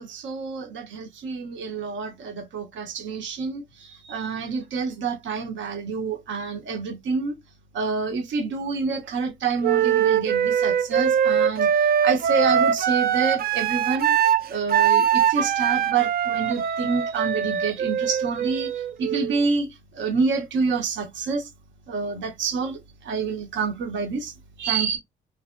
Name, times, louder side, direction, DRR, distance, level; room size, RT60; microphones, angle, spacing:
voice 1, 0.0-7.4 7.7-14.1 14.5-21.5 21.9-25.0, right 5 dB, 70° right, 1.0 m, -28 dB
Wind instrument woodwind instrument, 9.6-19.4, right 8 dB, 50° right, 0.4 m, -22 dB
3.3 x 2.7 x 2.2 m
cardioid pair, 90°, 20 cm